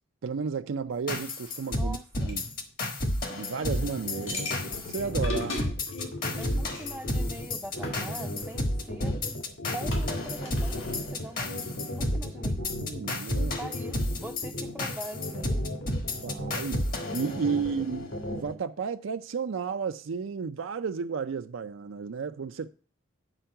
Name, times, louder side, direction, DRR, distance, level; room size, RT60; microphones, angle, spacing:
voice 1, 0.2-2.0 2.2-2.4 3.3-4.5 4.9-5.6 12.6-13.6 16.2-22.7, right 5 dB, 80° right, 0.4 m, -33 dB
time night mares, 1.1-18.0, left 1 dB, 45° left, 1.2 m, -31 dB
voice 2, 1.7-2.3 6.4-9.2 9.7-11.5 12.0-12.6 13.6-15.7 17.4-17.7, right 1 dB, 5° right, 0.4 m, -43 dB
sound 1, 2.3-2.4 4.3-6.9 7.6-8.8 9.4-9.5 9.9-11.1, left 2 dB, 85° left, 2.6 m, -37 dB
sound 2, 3.8-18.5, left 1 dB, 65° left, 1.7 m, -37 dB
9.0 x 4.5 x 5.7 m
head